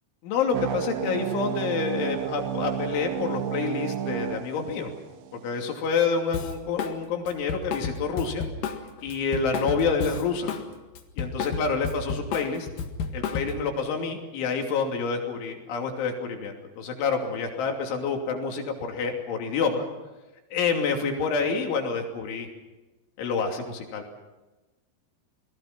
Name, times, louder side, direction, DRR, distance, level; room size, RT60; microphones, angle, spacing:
voice 1, 0.2-4.9 5.3-8.5 9.0-10.5 11.2-12.7 13.1-19.9 20.5-22.5 23.2-24.0, left 5 dB, 85° left, 2 dB, 5.3 m, -28 dB
sound 1, 0.5-5.5, right 10 dB, 75° right, 3.2 m, -32 dB
Drum kit, 6.3-7.0 7.3-10.7 10.9-13.7, left 5 dB, 55° left, 3.0 m, -32 dB
29.0 x 20.5 x 6.0 m, 1.1 s
omnidirectional pair, 5.3 m